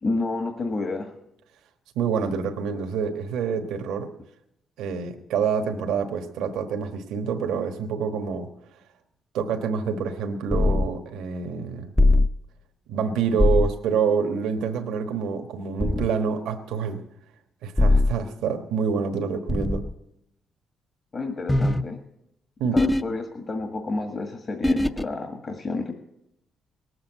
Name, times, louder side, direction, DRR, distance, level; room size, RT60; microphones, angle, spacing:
voice 1, 0.0-1.1 21.1-22.0 22.7-25.9, left 3 dB, 40° left, 4 dB, 1.6 m, -30 dB
voice 2, 2.0-4.1 4.8-8.5 9.3-11.9 12.9-17.0 17.6-19.8 22.6-22.8, right 6 dB, 90° right, 5 dB, 1.2 m, -27 dB
sound 1, 10.5-10.9 12.0-12.3 13.4-13.7 15.8-16.1 17.8-18.1 19.5-19.9 21.5-21.8 22.8-23.0 24.6-25.0, left 2 dB, 10° left, 0.6 m, -20 dB
19.0 x 8.0 x 8.0 m, 0.83 s
cardioid pair, 90°, 0 cm